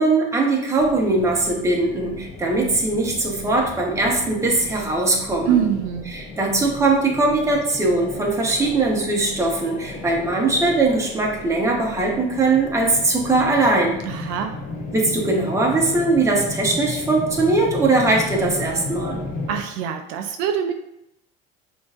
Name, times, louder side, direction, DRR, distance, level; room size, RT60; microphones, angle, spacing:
voice 1, 0.0-5.7 6.1-14.0 14.9-19.2, right 2 dB, 15° right, -2 dB, 0.9 m, -20 dB
sound 1, 0.8-19.6, left 3 dB, 40° left, 0.7 m, -35 dB
voice 2, 5.5-6.1 14.1-14.6 19.5-20.7, right 8 dB, 75° right, 6 dB, 0.4 m, -24 dB
6.1 x 2.7 x 2.4 m, 0.81 s
cardioid pair, 125°, 21 cm